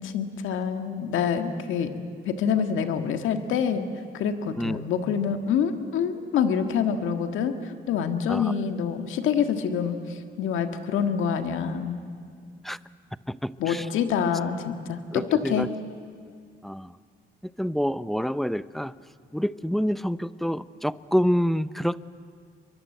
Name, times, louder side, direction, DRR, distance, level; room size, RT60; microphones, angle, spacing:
voice 1, 0.0-1.9 2.2-3.9 4.1-12.0 13.6-15.7, left 7 dB, 85° left, 7 dB, 1.7 m, -26 dB
voice 2, 13.3-13.9 15.1-15.7 16.6-17.0 17.4-18.9 19.3-22.0, equal, ahead, 16 dB, 0.6 m, -27 dB
29.0 x 22.5 x 7.9 m, 2.1 s
cardioid pair, 90°, 20 cm